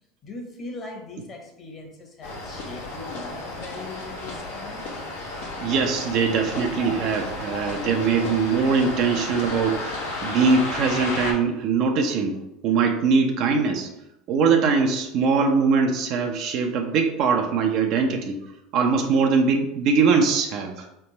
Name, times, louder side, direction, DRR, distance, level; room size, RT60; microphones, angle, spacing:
voice 1, 0.2-4.8, left 2 dB, 40° left, 2 dB, 1.2 m, -40 dB
sound 1, 2.2-11.3, left 2 dB, 80° left, 1.1 m, -33 dB
voice 2, 5.6-13.9 14.3-18.4 18.7-20.9, right 5 dB, 55° right, 3 dB, 0.6 m, -22 dB
4.2 x 3.4 x 3.0 m, 0.86 s
hypercardioid pair, 85°, 0 cm